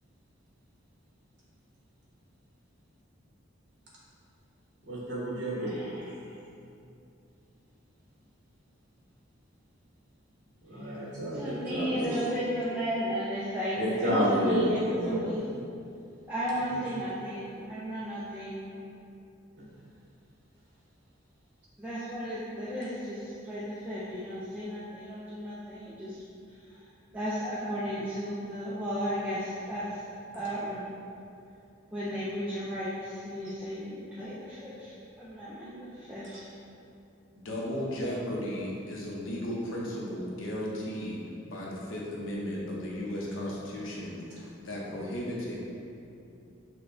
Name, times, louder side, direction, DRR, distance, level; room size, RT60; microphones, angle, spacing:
voice 1, 4.8-5.8 10.7-12.2 13.8-15.5 16.7-16.8 19.6-19.7 36.3-36.4, equal, 55° right, -8 dB, 1.1 m, -30 dB
voice 2, 5.6-6.3 11.4-15.4 16.3-18.7 21.8-26.2 26.7-26.8 27.1-30.8 31.9-36.5, equal, 5° right, -10 dB, 0.3 m, -34 dB
voice 3, 37.3-41.2 41.5-45.6, equal, 75° left, -4 dB, 0.7 m, -35 dB
6.1 x 2.1 x 2.5 m, 2.6 s
head